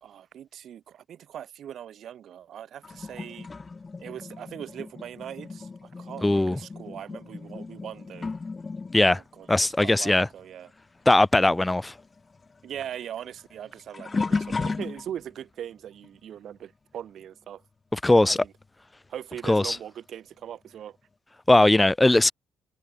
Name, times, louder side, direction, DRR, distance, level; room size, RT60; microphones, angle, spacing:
voice 1, 0.0-3.5 4.0-8.3 9.0-10.7 12.6-17.6 18.2-18.5 19.1-21.0, right 10 dB, 65° right, 3.7 m, -40 dB
sound 1, 2.8-10.8 11.1-15.4 16.0-16.4 18.6-18.7 19.6-19.7, left 4 dB, 30° left, 4.0 m, -36 dB
voice 2, 6.2-6.6 8.9-9.2 9.5-10.3 11.1-11.9 17.9-18.4 19.5-19.8 21.5-22.3, left 2 dB, 15° left, 0.5 m, -19 dB
cardioid pair, 90°, 0 cm